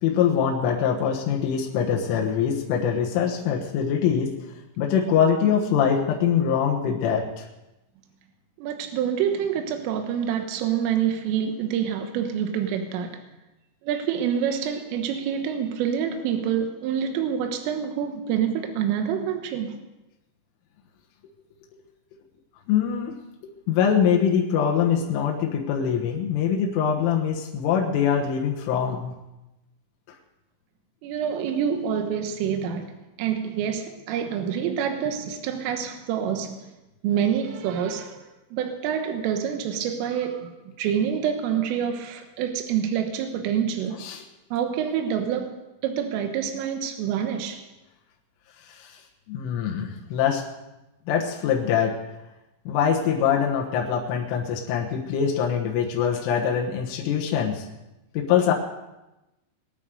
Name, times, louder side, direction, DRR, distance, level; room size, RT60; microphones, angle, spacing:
voice 1, 0.0-4.4 4.8-7.4 22.7-23.2 23.4-29.1 44.0-44.2 48.6-49.0 49.3-50.4 51.1-52.0 52.7-57.7 58.1-58.5, left 8 dB, 80° left, 0 dB, 3.8 m, -23 dB
voice 2, 8.6-13.2 13.8-19.8 31.0-32.9 33.2-36.6 37.0-40.5 40.8-44.0 44.5-45.6 45.8-47.6, right 8 dB, 80° right, 5 dB, 3.8 m, -27 dB
21.5 x 9.2 x 6.7 m, 0.99 s
omnidirectional pair, 5.9 m